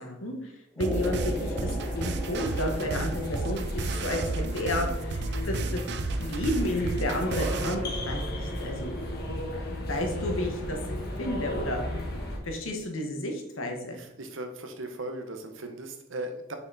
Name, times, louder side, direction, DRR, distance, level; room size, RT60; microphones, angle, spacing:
voice 1, 0.0-5.8 6.2-9.0 9.5-11.8 12.4-14.0, left 1 dB, 80° left, 3 dB, 1.5 m, -32 dB
sound 1, 0.8-4.8, equal, ahead, 0.8 m, -38 dB
sound 2, 0.8-7.7, right 3 dB, 55° right, 0.5 m, -33 dB
sound 3, 0.9-12.4, left 1 dB, 50° left, 1.5 m, -34 dB
voice 2, 13.9-16.5, right 1 dB, 70° right, 6 dB, 1.0 m, -38 dB
6.1 x 6.0 x 4.1 m, 0.83 s
head